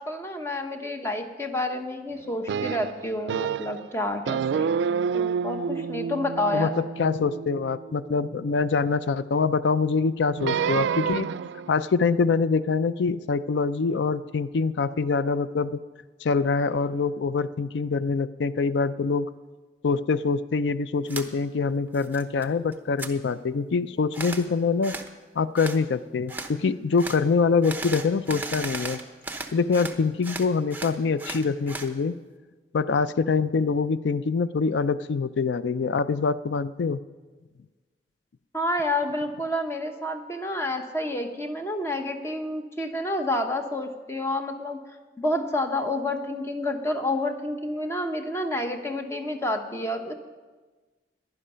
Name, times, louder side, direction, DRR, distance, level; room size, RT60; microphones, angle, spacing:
voice 1, 0.0-4.7 5.1-6.7 38.5-44.8 45.2-50.1, left 1 dB, 15° left, 4 dB, 1.0 m, -29 dB
sound 1, 2.5-3.9 4.3-8.6 10.4-11.7, right 6 dB, 90° right, 0.3 m, -29 dB
voice 2, 6.5-11.3 11.7-15.8 16.2-19.3 19.8-25.0 25.4-29.0 29.5-32.1 32.7-37.0, left 4 dB, 90° left, 15 dB, 0.4 m, -25 dB
sound 2, 21.1-21.3 21.7-22.5 22.7-23.1 24.1-24.4 24.8-25.1 25.5-25.8 26.3-26.5 27.0-27.2 27.6-30.0 30.2-31.9, right 3 dB, 10° right, 0.8 m, -35 dB
15.0 x 11.0 x 5.6 m, 1.3 s
head